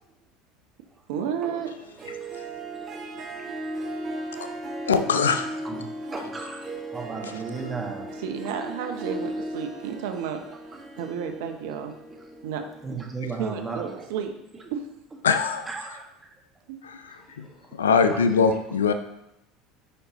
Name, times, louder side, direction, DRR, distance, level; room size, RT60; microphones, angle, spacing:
voice 1, 1.1-1.7 8.1-10.4 11.0-11.9 12.4-12.7 13.4-14.3 14.7-14.9 16.7-16.8, right 8 dB, 65° right, 6 dB, 0.8 m, -31 dB
Harp, 1.8-13.0, right 1 dB, 40° right, 1.2 m, -37 dB
voice 2, 4.9-5.5 7.2-7.4 15.2-15.6 16.8-17.5 17.8-18.9, left 5 dB, 80° left, 9 dB, 0.5 m, -22 dB
voice 3, 6.1-6.6 6.9-8.1 12.8-14.0 15.7-16.0, right 4 dB, 20° right, 0 dB, 1.6 m, -34 dB
8.7 x 5.2 x 3.0 m, 0.83 s
hypercardioid pair, 70°, 0 cm